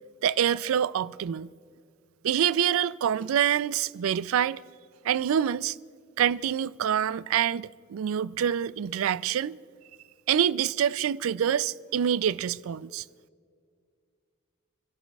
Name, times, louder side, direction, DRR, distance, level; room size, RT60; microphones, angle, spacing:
voice 1, 0.2-1.5 2.2-4.6 5.0-5.8 6.2-9.6 10.3-13.0, right 9 dB, 90° right, 0.3 m, -26 dB
28.5 x 12.5 x 2.3 m
head